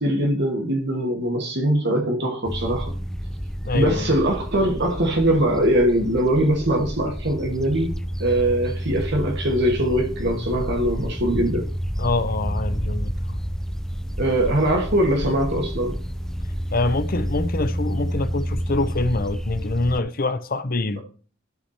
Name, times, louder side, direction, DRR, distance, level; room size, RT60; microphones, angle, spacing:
voice 1, 0.0-2.9 3.7-11.7 14.2-15.9, right 1 dB, 60° right, 2.2 m, -22 dB
sound 1, 2.4-20.0, equal, 5° left, 0.5 m, -29 dB
voice 2, 3.6-4.1 12.0-13.4 16.7-21.0, left 2 dB, 45° left, 0.8 m, -25 dB
13.0 x 5.0 x 4.3 m
head